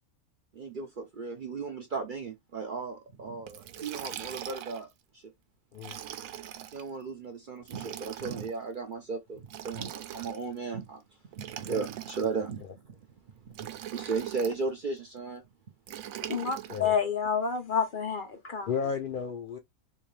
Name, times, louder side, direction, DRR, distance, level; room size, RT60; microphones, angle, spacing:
voice 1, 0.5-4.9 5.1-5.3 6.7-11.0 11.3-12.6 13.4-15.4 16.7-16.8, right 4 dB, 55° right, 0.6 m, -35 dB
Liquid, 3.5-4.9 5.7-6.8 7.6-8.5 9.5-10.6 11.3-12.5 13.5-14.6 15.9-16.9, right 11 dB, 80° right, 1.0 m, -41 dB
voice 2, 16.3-18.7, left 6 dB, 45° left, 0.7 m, -29 dB
voice 3, 18.7-19.6, left 6 dB, 85° left, 0.4 m, -33 dB
3.6 x 2.7 x 3.1 m
omnidirectional pair, 1.5 m